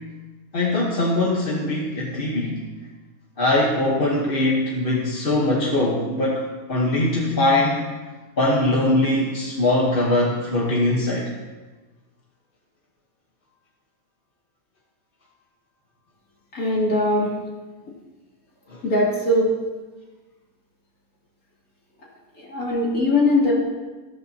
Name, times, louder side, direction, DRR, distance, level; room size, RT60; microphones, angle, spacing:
voice 1, 0.5-2.5 3.4-7.8 8.4-11.3 18.7-18.8, left 1 dB, 40° left, -3 dB, 1.3 m, -21 dB
voice 2, 16.5-17.3 18.8-19.5 22.4-23.5, left 1 dB, 70° left, -5 dB, 3.3 m, -20 dB
14.5 x 13.0 x 2.8 m, 1.3 s
omnidirectional pair, 1.6 m